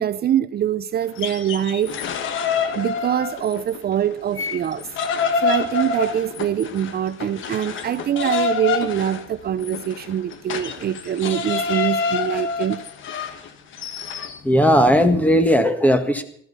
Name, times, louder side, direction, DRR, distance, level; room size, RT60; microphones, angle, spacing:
voice 1, 0.0-2.2 2.7-4.9 5.4-12.8, right 10 dB, 55° right, 13 dB, 0.6 m, -24 dB
sound 1, 1.0-3.8 4.1-14.4, left 5 dB, 80° left, 1.4 m, -27 dB
voice 2, 14.4-16.2, equal, 5° left, 8 dB, 1.7 m, -16 dB
14.5 x 13.5 x 5.5 m, 0.63 s
cardioid pair, 90°, 20 cm